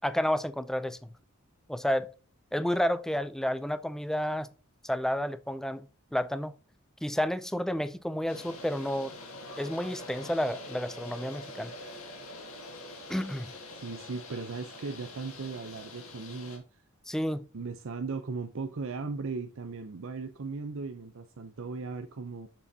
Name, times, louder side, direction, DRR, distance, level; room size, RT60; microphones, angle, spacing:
voice 1, 0.0-1.1 1.7-2.1 2.5-4.5 4.8-5.9 6.1-6.5 7.0-9.1 9.6-11.7 13.1-13.5 17.1-17.4, equal, ahead, 0.4 m, -30 dB
sound 1, 8.3-16.6, left 2 dB, 80° left, 2.1 m, -45 dB
voice 2, 13.7-16.8 17.5-22.5, right 4 dB, 60° right, 0.6 m, -37 dB
7.5 x 6.9 x 2.7 m
head